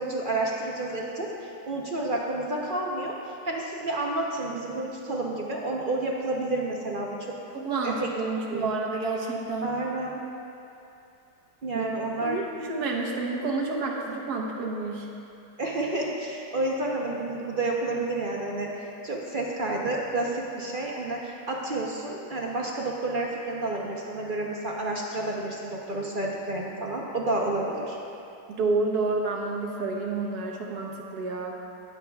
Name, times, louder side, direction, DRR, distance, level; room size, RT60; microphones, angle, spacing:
voice 1, 0.0-7.4 7.8-8.1 8.5-8.7 9.6-10.2 11.6-12.4 15.6-18.7 19.0-28.0, right 2 dB, 45° right, -2 dB, 0.6 m, -30 dB
voice 2, 7.5-9.7 11.7-11.9 12.2-15.1 28.5-31.6, right 3 dB, 65° right, 0 dB, 1.5 m, -29 dB
18.5 x 7.7 x 2.3 m, 2.7 s
omnidirectional pair, 1.9 m